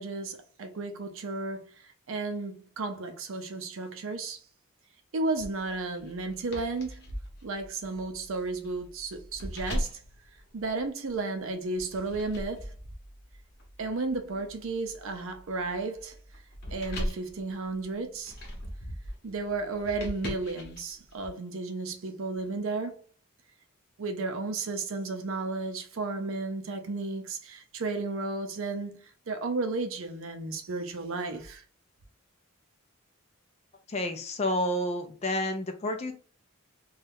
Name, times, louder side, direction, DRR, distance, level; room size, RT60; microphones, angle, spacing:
voice 1, 0.0-1.7 2.1-4.4 5.1-7.0 7.4-9.9 10.5-12.7 13.8-16.1 16.7-18.3 19.2-23.0 24.0-29.0 29.3-31.6, right 3 dB, 65° right, 0.5 m, -33 dB
sound 1, 5.4-11.2 11.8-21.3, equal, 45° left, 0.9 m, -40 dB
voice 2, 33.9-36.1, left 1 dB, 30° left, 0.4 m, -30 dB
2.6 x 2.3 x 3.4 m
head